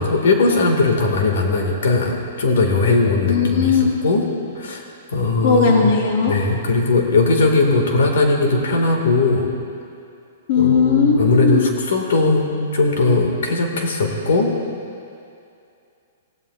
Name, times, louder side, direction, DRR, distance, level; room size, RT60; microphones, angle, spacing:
voice 1, 0.0-4.2 4.5-4.8 5.1-5.9 6.3-9.5 10.6-14.6, left 3 dB, 75° left, 2 dB, 2.0 m, -19 dB
voice 2, 3.3-3.9 5.4-6.4 10.5-11.7, left 6 dB, 45° left, -1 dB, 1.8 m, -17 dB
25.5 x 16.0 x 2.5 m, 2.5 s
hypercardioid pair, 170°, 0 cm